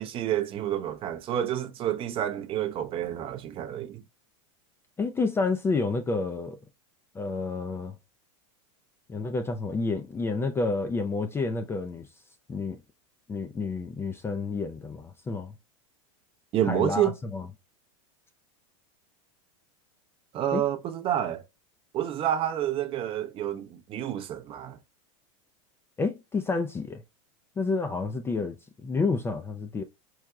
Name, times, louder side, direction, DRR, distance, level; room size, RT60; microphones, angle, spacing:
voice 1, 0.0-4.0 16.5-17.1 20.3-21.4 21.9-24.8, right 11 dB, 35° right, 0.6 m, -29 dB
voice 2, 5.0-6.6 7.1-8.0 9.1-12.1 12.5-12.8 13.3-15.5 16.6-17.5 20.5-20.6 26.0-27.0 27.6-29.8, left 3 dB, 15° left, 0.4 m, -29 dB
4.7 x 2.1 x 3.6 m
supercardioid pair, 120°, 17 cm